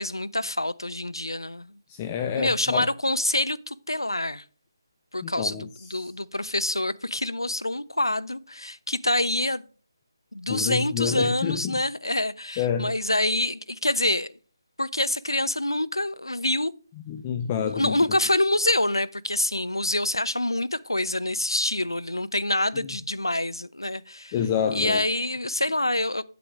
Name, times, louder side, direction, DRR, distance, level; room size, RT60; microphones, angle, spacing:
voice 1, 0.0-1.8 2.4-4.4 5.1-9.6 10.3-14.3 14.8-16.7 17.7-24.3 24.7-26.2, left 1 dB, 80° left, 0.5 m, -26 dB
voice 2, 1.9-2.9 5.2-5.7 6.0-6.1 10.5-11.8 12.6-12.9 17.1-18.0 24.3-25.0, left 8 dB, 20° left, 0.4 m, -28 dB
8.5 x 7.7 x 3.5 m
figure-of-eight pair, 150°, 2 cm